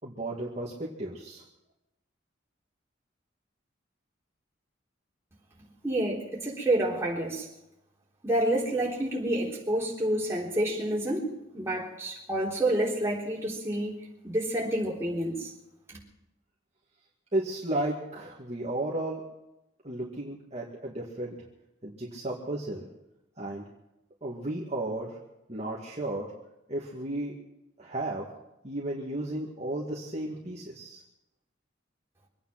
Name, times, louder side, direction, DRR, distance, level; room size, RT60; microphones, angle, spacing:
voice 1, 0.0-1.4 17.3-19.3 19.8-21.3 21.8-22.9 23.4-23.6 24.2-25.2 25.5-26.3 26.7-27.4 27.8-28.3 28.6-31.0, right 1 dB, 35° right, -5 dB, 2.2 m, -34 dB
voice 2, 5.8-7.5 8.2-15.5 15.9-16.0, right 1 dB, 15° right, -4 dB, 3.7 m, -29 dB
25.0 x 9.4 x 6.0 m, 0.91 s
head